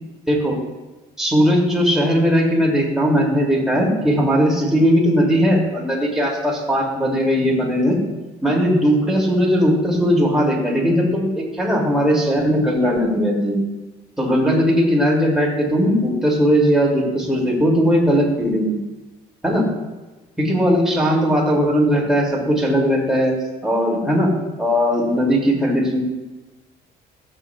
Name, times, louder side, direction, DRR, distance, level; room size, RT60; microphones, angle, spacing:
voice 1, 0.3-0.6 1.2-8.0 8.4-13.6 14.2-18.7 19.4-19.7 20.4-23.3 23.6-24.3 24.6-26.0, equal, 5° right, -4 dB, 2.7 m, -18 dB
13.5 x 7.5 x 2.4 m, 1.1 s
cardioid pair, 110°, 17 cm